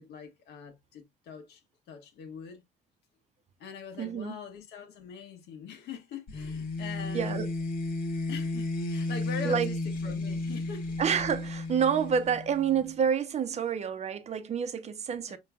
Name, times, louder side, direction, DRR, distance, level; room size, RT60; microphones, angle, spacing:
voice 1, 0.0-1.6 1.9-2.6 3.6-7.5 8.3-10.9 15.3-15.4, left 6 dB, 75° left, 1.4 m, -43 dB
voice 2, 4.0-4.4 7.1-7.5 9.4-9.7 11.0-15.4, right 7 dB, 40° right, 0.7 m, -28 dB
sound 1, 6.3-12.9, left 2 dB, 55° left, 1.3 m, -33 dB
5.5 x 3.1 x 2.3 m
cardioid pair, 110°, 17 cm